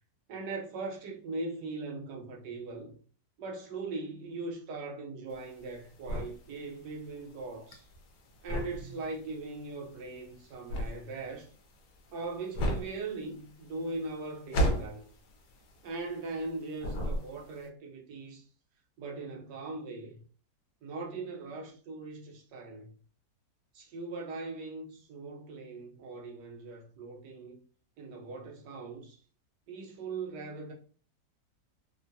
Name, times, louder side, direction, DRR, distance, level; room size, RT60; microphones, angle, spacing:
voice 1, 0.3-2.9 3.4-7.9 8.4-11.5 12.1-15.0 15.8-18.4 19.0-20.2 20.8-22.9 23.7-27.6 28.0-29.2 29.7-30.7, right 3 dB, 90° right, 1.3 m, -40 dB
sound 1, 5.3-16.5 16.8-17.6, equal, 80° left, 1.2 m, -34 dB
3.5 x 2.2 x 2.6 m
omnidirectional pair, 1.7 m